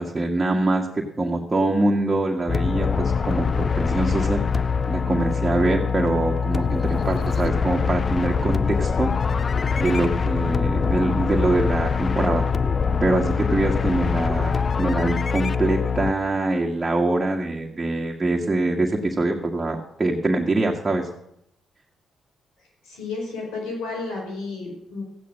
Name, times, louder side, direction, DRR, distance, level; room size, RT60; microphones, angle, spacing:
voice 1, 0.0-4.4 4.9-9.1 9.8-12.4 13.0-21.1, right 2 dB, 25° right, -1 dB, 1.8 m, -24 dB
sound 1, 2.5-16.1, left 5 dB, 45° left, 0.5 m, -23 dB
voice 2, 22.8-25.0, left 3 dB, 90° left, 0 dB, 5.2 m, -32 dB
15.0 x 9.3 x 6.5 m, 0.78 s
supercardioid pair, 65°, 0 cm